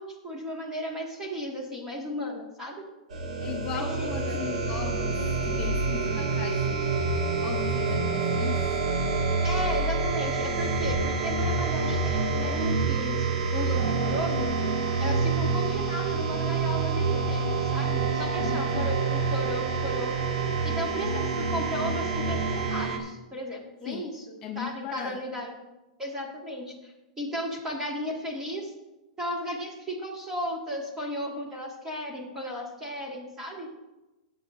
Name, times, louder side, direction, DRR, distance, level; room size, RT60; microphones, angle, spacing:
voice 1, 0.0-2.9 3.7-4.4 9.4-14.5 15.0-20.3 20.6-24.2 24.6-25.5 26.0-28.7 29.2-33.7, equal, 10° right, -1 dB, 1.9 m, -35 dB
sound 1, 3.1-23.0, right 4 dB, 85° right, 2.1 m, -27 dB
voice 2, 3.4-7.1 7.4-8.7 18.4-18.9 23.9-24.1 24.4-25.2, left 8 dB, 25° left, 2 dB, 0.6 m, -38 dB
16.5 x 8.0 x 2.6 m, 1.0 s
supercardioid pair, 165°, 4 cm